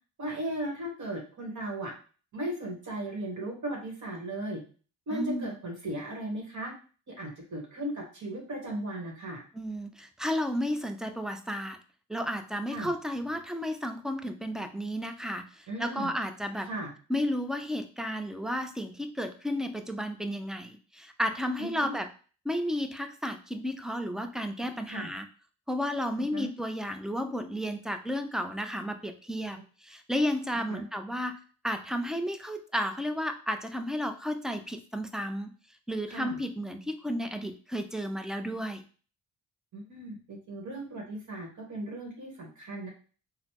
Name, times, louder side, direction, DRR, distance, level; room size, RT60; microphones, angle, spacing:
voice 1, 0.2-1.9 2.3-4.6 5.1-6.7 7.1-9.4 12.7-12.9 15.7-16.1 16.7-16.9 21.6-21.9 24.9-25.1 26.3-26.5 30.7-30.8 36.1-36.4 39.7-42.9, right 1 dB, 55° right, -1 dB, 1.2 m, -36 dB
voice 2, 5.1-5.6 9.5-11.8 12.1-16.7 17.1-22.1 22.4-25.3 25.7-35.5 35.9-38.8, equal, ahead, 7 dB, 0.4 m, -33 dB
4.0 x 2.0 x 2.9 m, 0.38 s
cardioid pair, 65°, 36 cm